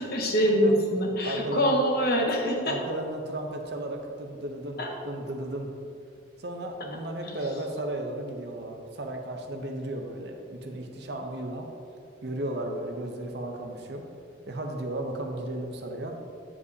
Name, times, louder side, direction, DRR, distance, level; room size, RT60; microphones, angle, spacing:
voice 1, 0.0-2.8 4.8-4.9, equal, 50° left, 1 dB, 1.0 m, -24 dB
voice 2, 1.2-1.8 2.6-5.8 6.4-11.7 12.2-14.0 14.5-16.2, right 1 dB, 55° right, 3 dB, 0.7 m, -34 dB
8.4 x 7.4 x 2.8 m, 2.5 s
head